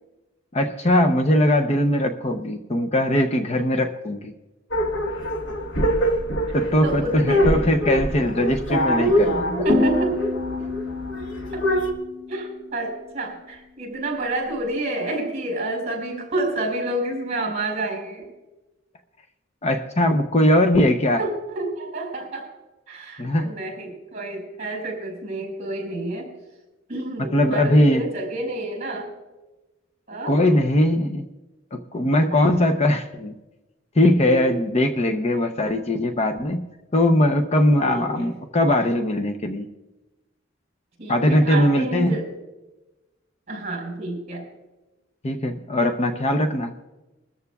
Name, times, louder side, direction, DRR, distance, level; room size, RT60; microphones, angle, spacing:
voice 1, 0.5-4.3 6.5-9.6 19.6-21.2 23.2-23.5 27.3-28.0 30.3-31.3 31.7-33.3 33.9-36.7 36.9-39.7 41.1-42.1 45.2-46.7, left 1 dB, 35° left, 6 dB, 0.7 m, -20 dB
sound 1, 4.7-11.9, equal, 70° left, 1.3 m, -24 dB
voice 2, 6.8-7.6 9.6-10.3 11.5-11.7 12.3-18.2 21.2-22.5 22.9-26.3 26.9-29.1 30.1-30.4 32.3-32.4 34.3-34.6 37.8-38.3 41.0-42.3 43.5-44.5, right 1 dB, 35° right, 2 dB, 4.9 m, -29 dB
sound 2, 9.7-12.7, left 3 dB, 5° right, 5.7 m, -28 dB
22.5 x 13.5 x 2.3 m, 1.1 s
head